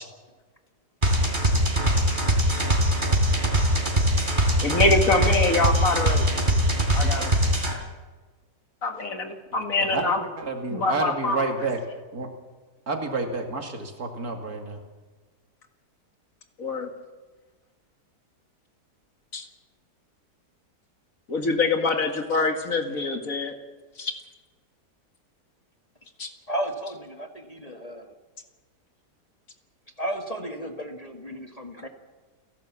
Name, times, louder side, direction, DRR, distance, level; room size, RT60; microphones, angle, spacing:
sound 1, 1.0-7.7, equal, 30° right, 3.5 m, -22 dB
voice 1, 4.6-6.3 6.9-7.3 8.8-10.2 10.7-11.5 16.6-16.9 19.3-19.5 21.3-23.5 24.0-24.1 26.2-26.3, left 3 dB, 55° left, 5 dB, 2.3 m, -24 dB
voice 2, 9.9-11.8 12.1-12.3 12.9-14.8, right 3 dB, 60° right, 3 dB, 2.8 m, -29 dB
voice 3, 26.5-28.2 30.0-31.9, right 1 dB, 25° left, 4 dB, 1.6 m, -33 dB
29.5 x 12.0 x 7.3 m, 1.3 s
omnidirectional pair, 1.8 m